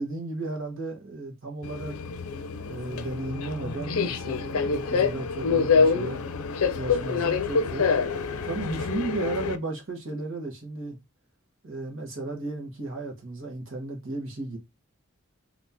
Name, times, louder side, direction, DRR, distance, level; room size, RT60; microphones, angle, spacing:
voice 1, 0.0-2.0 2.6-6.2 6.7-7.9 8.4-11.0 11.6-14.6, right 2 dB, 65° right, 1.2 m, -34 dB
Subway metro underground, 1.6-9.6, left 5 dB, 85° left, 0.5 m, -26 dB
2.8 x 2.8 x 3.6 m
head